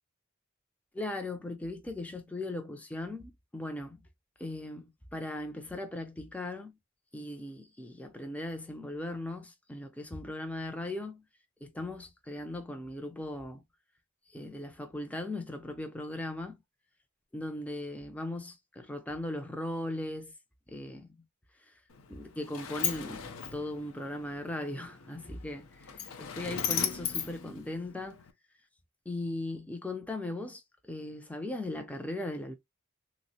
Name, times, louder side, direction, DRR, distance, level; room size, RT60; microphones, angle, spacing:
voice 1, 0.9-4.0 4.4-6.7 7.1-11.2 11.6-13.6 14.3-16.6 17.3-20.3 20.7-21.1 21.7-21.8 22.1-23.2 23.5-28.2 29.1-32.5, left 1 dB, 5° left, 0.3 m, -38 dB
Sliding door, 21.9-28.3, left 8 dB, 90° left, 0.5 m, -37 dB
3.4 x 2.0 x 2.6 m
head